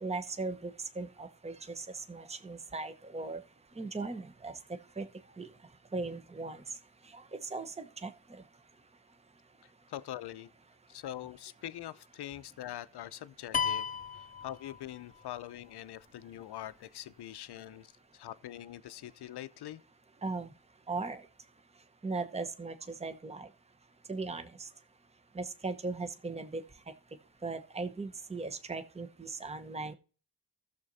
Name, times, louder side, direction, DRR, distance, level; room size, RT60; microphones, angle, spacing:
voice 1, 0.0-3.4 3.8-4.5 5.0-5.1 5.4-5.5 5.9-6.6 7.1-8.1 20.2-20.5 20.9-21.2 22.0-22.7 23.0-23.5 24.1-24.7 25.3-26.6 27.4-29.9, right 3 dB, 15° right, 0.9 m, -38 dB
voice 2, 9.6-10.5 10.9-13.9 14.1-19.8, left 12 dB, 60° left, 0.7 m, -44 dB
sound 1, 13.5-15.2, left 7 dB, 20° left, 0.4 m, -34 dB
15.0 x 6.7 x 2.7 m
supercardioid pair, 50°, 44 cm